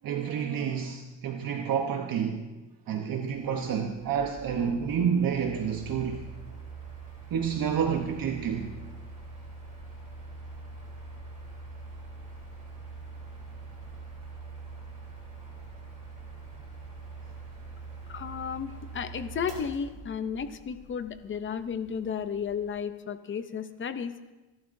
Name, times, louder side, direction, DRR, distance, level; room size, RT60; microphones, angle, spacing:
voice 1, 0.0-2.4 2.9-6.2 7.3-8.8, right 7 dB, 45° right, 3 dB, 0.9 m, -29 dB
Mechanical fan, 3.2-22.8, right 3 dB, 15° right, 3.1 m, -44 dB
voice 2, 18.1-24.1, left 7 dB, 25° left, 11 dB, 0.5 m, -33 dB
26.5 x 12.0 x 2.6 m, 1.1 s
cardioid pair, 165°, 49 cm